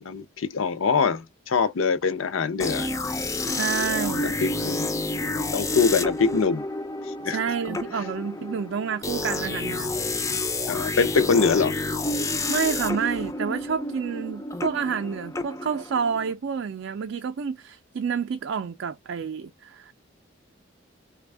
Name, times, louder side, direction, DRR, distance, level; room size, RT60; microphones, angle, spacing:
voice 1, 0.0-2.9 3.4-3.6 4.2-4.9 5.5-6.6 7.2-7.4 9.4-9.5 10.7-11.7, left 5 dB, 80° left, 0.5 m, -24 dB
sound 1, 2.6-16.3, left 2 dB, 15° left, 0.3 m, -29 dB
voice 2, 3.5-4.3 7.3-9.9 12.5-19.9, right 6 dB, 65° right, 0.3 m, -29 dB
3.3 x 2.2 x 3.2 m
head